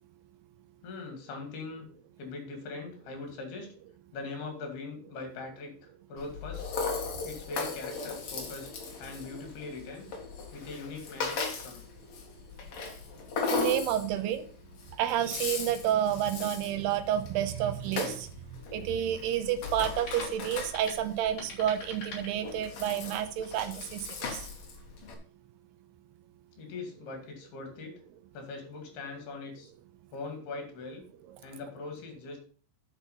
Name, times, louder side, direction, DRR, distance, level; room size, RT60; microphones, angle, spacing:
voice 1, 0.8-1.9 2.2-3.7 4.1-6.7 7.2-8.7 9.0-10.1 10.5-11.8 26.6-28.0 28.3-29.7 30.1-31.0 31.4-32.4, left 3 dB, 70° left, 4 dB, 4.2 m, -41 dB
Rattle (instrument), 6.2-25.1, left 4 dB, 50° left, 1.8 m, -38 dB
voice 2, 13.5-14.5 15.0-18.3 18.7-24.4, right 10 dB, 85° right, 9 dB, 2.9 m, -30 dB
sound 1, 20.0-22.9, left 3 dB, 35° left, 4.0 m, -48 dB
10.0 x 5.6 x 5.6 m, 0.41 s
omnidirectional pair, 4.7 m